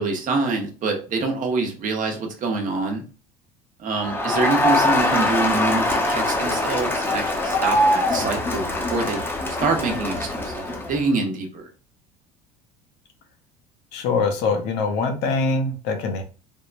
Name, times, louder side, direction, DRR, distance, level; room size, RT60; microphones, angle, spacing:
voice 1, 0.0-3.0 3.8-9.2 9.6-11.6, right 3 dB, 45° right, 3 dB, 0.9 m, -26 dB
Crowd, 4.0-11.0, left 1 dB, 10° left, 0.7 m, -23 dB
voice 2, 13.9-16.2, left 4 dB, 65° left, 5 dB, 0.7 m, -23 dB
3.5 x 2.1 x 2.5 m, 0.36 s
hypercardioid pair, 80°, 19 cm